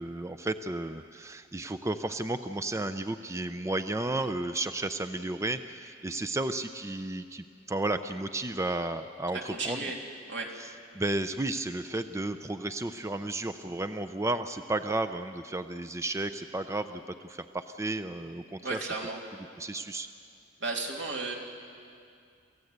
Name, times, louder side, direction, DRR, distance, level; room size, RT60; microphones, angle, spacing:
voice 1, 0.0-9.8 10.6-10.7 10.9-18.8 19.6-20.1, right 2 dB, 15° right, 10 dB, 0.5 m, -33 dB
voice 2, 9.3-10.0 10.3-10.5 18.6-19.2 20.6-21.3, right 3 dB, 75° right, 0 dB, 3.1 m, -34 dB
28.0 x 16.0 x 8.1 m, 2.3 s
head